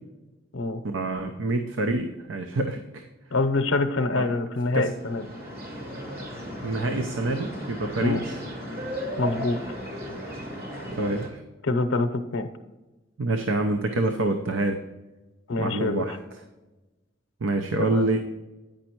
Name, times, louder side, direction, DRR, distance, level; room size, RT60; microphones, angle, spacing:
voice 1, 0.8-3.0 4.1-4.3 4.7-4.9 6.6-8.4 11.0-11.4 13.2-14.8 15.6-16.2 17.4-18.2, right 2 dB, 80° right, 6 dB, 0.7 m, -26 dB
voice 2, 3.3-5.2 8.0-8.2 9.2-9.6 11.6-12.5 15.5-16.2 17.8-18.1, left 2 dB, 85° left, 8 dB, 0.7 m, -25 dB
sound 1, 4.8-11.3, equal, 50° right, 2.0 m, -36 dB
9.0 x 5.3 x 4.5 m, 1.1 s
head